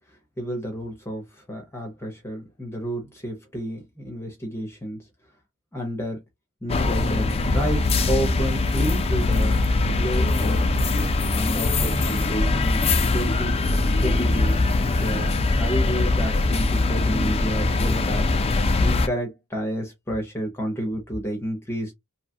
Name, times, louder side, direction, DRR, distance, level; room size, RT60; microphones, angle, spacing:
voice 1, 0.4-5.1 5.7-6.2 6.6-10.8 11.3-12.9 13.1-13.6 14.0-14.6 15.0-18.3 18.8-21.9, equal, 10° left, 0.8 m, -30 dB
sound 1, 6.7-19.1, left 2 dB, 25° left, 0.4 m, -22 dB
2.8 x 2.3 x 2.7 m
head